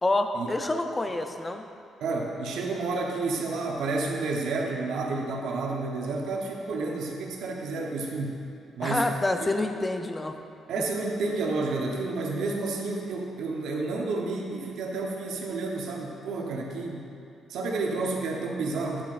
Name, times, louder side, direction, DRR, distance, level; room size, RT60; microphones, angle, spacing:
voice 1, 0.0-1.6 8.8-10.4, left 2 dB, 20° left, 6 dB, 0.5 m, -27 dB
voice 2, 2.0-8.4 8.8-9.1 10.7-17.1 17.5-19.0, right 3 dB, 80° right, 0 dB, 0.9 m, -30 dB
9.4 x 7.4 x 2.5 m, 2.5 s
cardioid pair, 90°, 0 cm